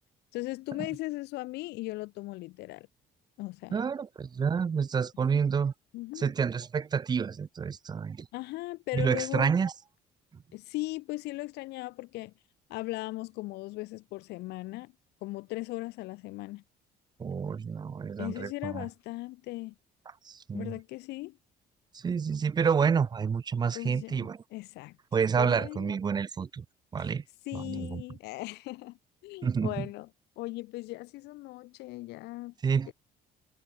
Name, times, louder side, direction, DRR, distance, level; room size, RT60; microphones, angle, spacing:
voice 1, 0.3-2.9 3.4-3.9 5.9-6.3 8.3-9.6 10.5-12.3 12.7-14.9 15.2-16.6 18.2-19.7 20.5-21.4 23.7-25.0 25.4-25.9 27.0-27.1 27.5-29.0 29.2-30.1 30.4-32.5 32.9-33.0, left 20 dB, 80° left, 0.5 m, -38 dB
voice 2, 3.7-5.7 6.2-8.3 8.9-9.7 17.2-18.9 20.2-20.7 21.9-24.4 25.1-26.6 26.9-27.2 27.5-28.0 29.4-29.9 32.6-32.9, right 6 dB, 25° right, 0.5 m, -29 dB
cardioid pair, 110°, 17 cm